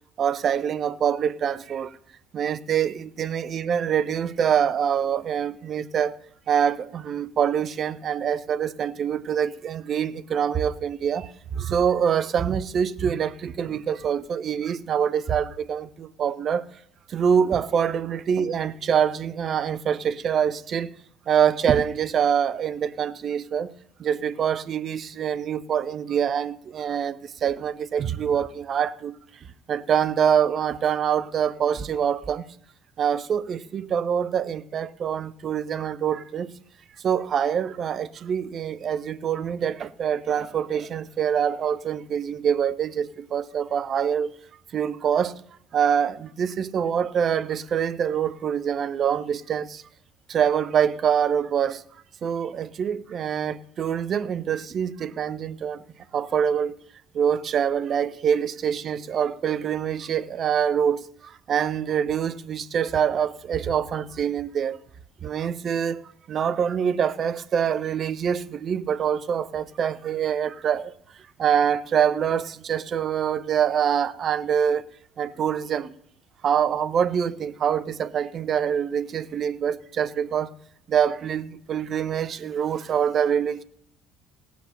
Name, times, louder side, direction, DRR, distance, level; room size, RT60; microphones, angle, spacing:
voice 1, 0.2-1.9 2.3-6.2 6.5-11.3 11.6-16.6 17.1-20.9 21.3-23.7 24.0-29.1 29.7-32.4 33.0-36.5 37.0-44.3 44.7-45.4 45.7-49.8 50.3-51.8 52.2-55.8 56.1-56.7 57.2-61.0 61.5-64.8 65.2-66.0 66.3-70.9 71.4-74.8 75.2-75.9 76.4-80.5 80.9-83.6, right 8 dB, 40° right, 0.6 m, -25 dB
17.0 x 7.1 x 6.3 m
figure-of-eight pair, 55°, 0 cm